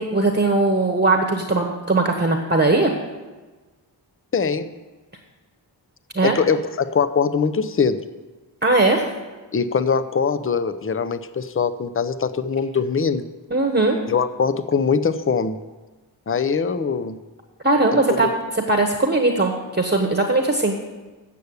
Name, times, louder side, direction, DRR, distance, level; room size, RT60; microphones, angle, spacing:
voice 1, 0.0-2.9 6.1-6.4 8.6-9.0 13.5-14.0 17.6-20.7, right 2 dB, 25° right, 3 dB, 1.1 m, -19 dB
voice 2, 4.3-4.7 6.2-8.0 9.5-13.2 14.1-15.6 16.3-17.2, left 5 dB, 30° left, 13 dB, 0.6 m, -22 dB
8.4 x 6.8 x 8.0 m, 1.2 s
wide cardioid pair, 45°, 44 cm